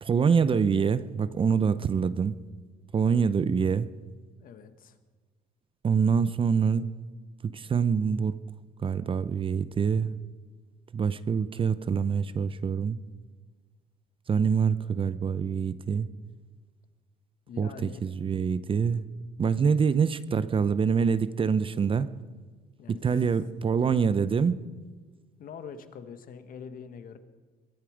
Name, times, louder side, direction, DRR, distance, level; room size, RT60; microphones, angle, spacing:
voice 1, 0.0-2.4 2.9-3.9 5.8-6.9 7.5-8.3 8.8-10.1 10.9-13.0 14.3-16.1 17.6-19.0 19.4-22.1 22.9-24.6, right 6 dB, 30° right, 0.6 m, -25 dB
voice 2, 4.4-5.0 17.5-18.0 22.8-23.1 25.4-27.2, left 6 dB, 55° left, 1.5 m, -44 dB
22.5 x 11.0 x 5.1 m
cardioid pair, 110°, 17 cm